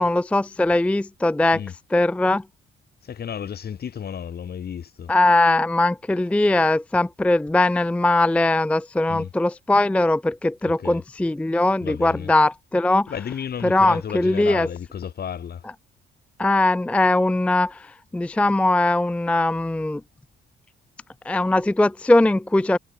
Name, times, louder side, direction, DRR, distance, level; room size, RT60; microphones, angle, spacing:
voice 1, 0.0-1.6 1.9-2.4 5.1-13.1 13.6-14.7 16.4-20.0 21.3-22.8, left 2 dB, 5° left, 0.4 m, -20 dB
voice 2, 3.0-5.1 9.1-9.3 10.6-11.0 11.8-12.3 13.1-15.7, left 8 dB, 50° left, 2.2 m, -33 dB
cardioid pair, 90°, 20 cm